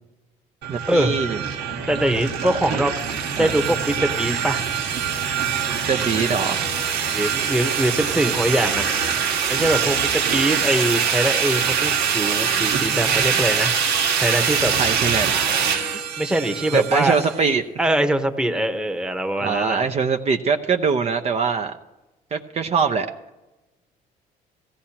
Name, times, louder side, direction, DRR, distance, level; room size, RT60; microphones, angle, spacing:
sound 1, 0.6-17.4, right 7 dB, 90° right, 1.5 m, -23 dB
voice 1, 0.7-1.4 2.7-2.8 3.4-3.5 5.7-6.7 14.7-15.7 16.7-17.6 19.4-21.8 22.3-23.1, right 5 dB, 40° right, 5 dB, 0.7 m, -23 dB
voice 2, 1.9-2.9 3.4-4.6 7.1-8.9 9.5-13.7 14.2-14.7 16.2-17.3 17.8-19.9, right 1 dB, 5° right, 5 dB, 1.0 m, -22 dB
17.0 x 15.5 x 2.9 m, 1.1 s
cardioid pair, 110°, 17 cm